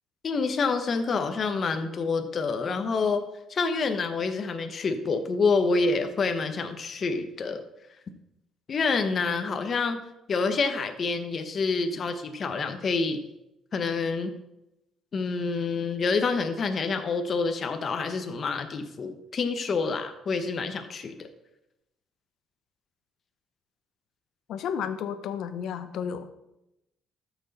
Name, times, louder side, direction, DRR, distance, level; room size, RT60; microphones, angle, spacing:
voice 1, 0.2-3.2 3.5-7.6 8.7-13.2 13.7-14.3 15.1-21.3, left 4 dB, 40° left, 7 dB, 1.0 m, -27 dB
voice 2, 24.5-26.3, left 7 dB, 70° left, 11 dB, 0.8 m, -32 dB
13.5 x 6.1 x 4.1 m, 0.88 s
cardioid pair, 115°, 0 cm